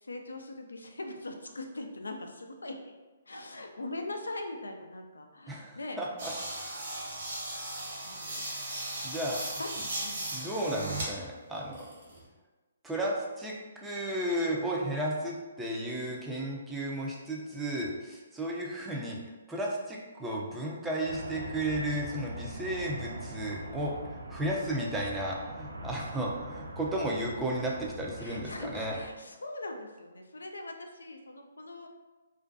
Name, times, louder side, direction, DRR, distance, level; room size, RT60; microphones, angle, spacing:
voice 1, 0.0-2.8 3.3-6.0 7.1-7.6 8.0-8.4 9.6-9.7 10.0-10.4 28.2-31.9, left 2 dB, 80° left, 4 dB, 0.3 m, -41 dB
voice 2, 5.5-6.3 9.0-9.4 10.3-11.9 12.8-19.2 19.5-29.0, right 1 dB, 10° right, -3 dB, 0.4 m, -34 dB
sound 1, 6.2-11.1 11.5-12.2, right 1 dB, 55° right, 1.0 m, -37 dB
sound 2, 21.0-29.1, right 1 dB, 80° right, 0.3 m, -42 dB
2.5 x 2.2 x 2.5 m, 1.2 s
figure-of-eight pair, 135°, 0 cm